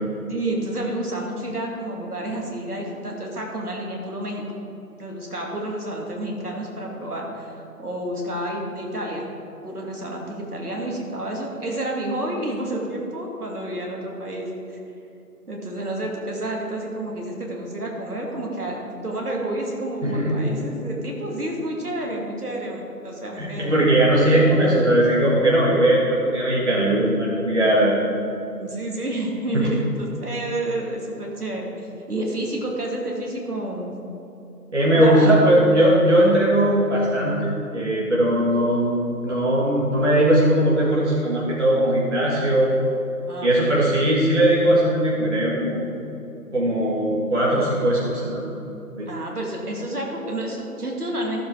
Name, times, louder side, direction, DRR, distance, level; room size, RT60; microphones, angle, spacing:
voice 1, 0.3-4.5 5.0-9.3 9.6-14.8 15.5-23.8 28.6-33.9 35.0-35.3 43.3-43.8 49.1-51.5, right 1 dB, 65° right, -1 dB, 2.4 m, -30 dB
voice 2, 20.0-20.4 23.4-28.0 29.5-29.7 34.7-42.8 43.4-45.8 46.5-48.4 49.0-49.1, right 1 dB, 45° right, -6 dB, 2.0 m, -19 dB
15.5 x 7.4 x 3.5 m, 2.9 s
figure-of-eight pair, 165°, 48 cm